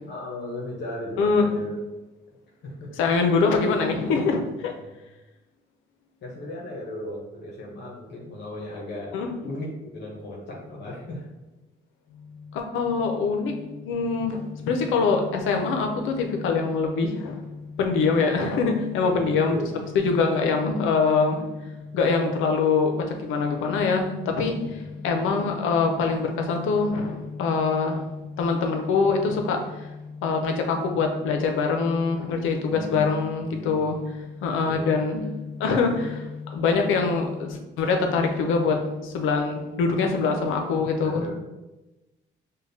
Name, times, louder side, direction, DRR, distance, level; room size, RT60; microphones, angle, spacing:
voice 1, 0.1-1.8 2.6-2.9 4.3-4.5 4.8-4.9 6.2-9.1 9.4-11.3 19.0-19.8 24.7-25.0 32.7-33.8 34.6-34.9 41.0-41.3, left 1 dB, 60° left, -3 dB, 0.9 m, -36 dB
voice 2, 3.0-4.7 9.1-9.3 12.5-13.5 13.8-14.4 14.7-17.4 17.8-19.6 19.9-21.4 21.9-22.9 23.2-24.6 25.0-28.0 28.4-29.6 30.2-34.1 34.4-35.3 35.6-41.3, left 4 dB, 85° left, 4 dB, 0.6 m, -24 dB
5.1 x 2.2 x 2.7 m, 1.0 s
cardioid pair, 90°, 20 cm